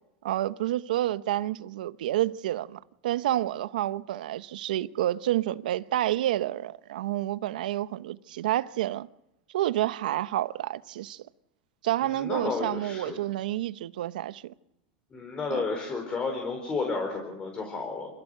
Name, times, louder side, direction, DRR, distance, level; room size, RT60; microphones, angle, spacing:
voice 1, 0.2-9.1 9.5-11.2 11.8-14.5 15.5-15.6, right 13 dB, 90° right, 0.9 m, -29 dB
voice 2, 12.0-13.2 15.1-18.1, left 4 dB, 20° left, 4.5 m, -32 dB
27.5 x 16.0 x 6.7 m
supercardioid pair, 145°, 4 cm